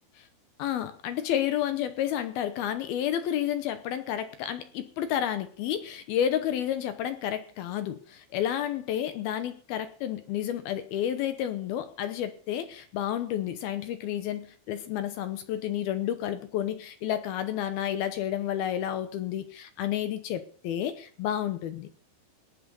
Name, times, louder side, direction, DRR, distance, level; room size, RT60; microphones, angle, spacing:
voice 1, 0.6-21.9, left 10 dB, 75° left, 2.4 m, -31 dB
18.5 x 7.5 x 6.9 m
omnidirectional pair, 5.3 m